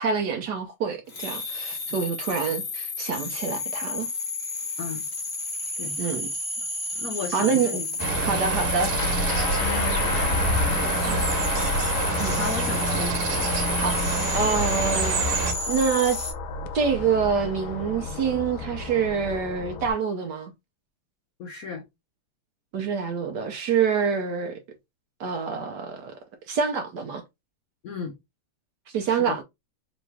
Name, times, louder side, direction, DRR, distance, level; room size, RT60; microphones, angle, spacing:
voice 1, 0.0-4.1 6.0-6.3 7.3-7.7 8.3-8.9 12.2-12.4 13.8-14.1 14.3-16.2 16.7-20.5 22.7-24.6 25.2-26.1 26.5-27.2 28.9-29.4, right 6 dB, 70° right, 1.0 m, -26 dB
sound 1, 1.1-16.3, left 3 dB, 35° left, 1.2 m, -31 dB
voice 2, 5.8-6.2 6.6-6.7 6.9-7.9 8.2-8.3 9.6-11.3 12.3-13.1 21.4-21.8 27.8-28.1 29.1-29.4, left 5 dB, 90° left, 0.7 m, -35 dB
sound 2, 8.0-15.5, right 3 dB, 85° right, 1.8 m, -27 dB
sound 3, 9.0-19.9, left 3 dB, 75° left, 1.3 m, -31 dB
3.7 x 3.1 x 3.3 m
omnidirectional pair, 2.4 m